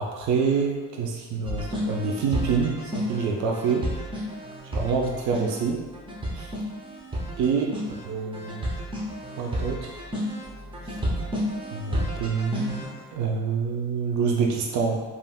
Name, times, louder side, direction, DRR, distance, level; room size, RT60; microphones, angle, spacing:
voice 1, 0.0-3.9 4.7-5.8 6.3-6.5 7.4-7.7 8.0-8.7 9.4-10.0 11.7-15.0, right 5 dB, 70° right, 0 dB, 0.5 m, -26 dB
sound 1, 1.4-13.0, equal, 15° right, 0.6 m, -32 dB
3.4 x 2.5 x 2.2 m, 1.3 s
cardioid pair, 90°, 30 cm